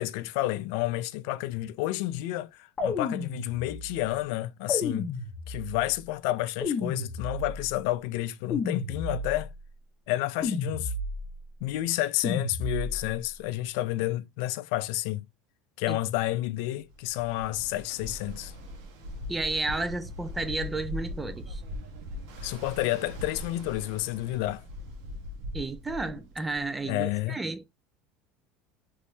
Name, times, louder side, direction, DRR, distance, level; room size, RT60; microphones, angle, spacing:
voice 1, 0.0-2.5 2.8-5.1 5.5-9.5 10.1-10.9 11.6-15.3 15.8-18.5 22.4-24.6 26.9-27.4, left 16 dB, 70° left, 0.3 m, -30 dB
sound 1, 2.8-4.0 4.7-5.9 6.6-7.7 8.5-9.5 10.4-11.4 12.2-13.1, left 3 dB, 20° left, 1.1 m, -32 dB
Ocean, 16.9-26.8, left 1 dB, 70° right, 1.0 m, -40 dB
voice 2, 19.3-21.6 25.5-27.7, right 3 dB, 10° right, 0.3 m, -32 dB
3.6 x 3.0 x 2.7 m
supercardioid pair, 145°, 0 cm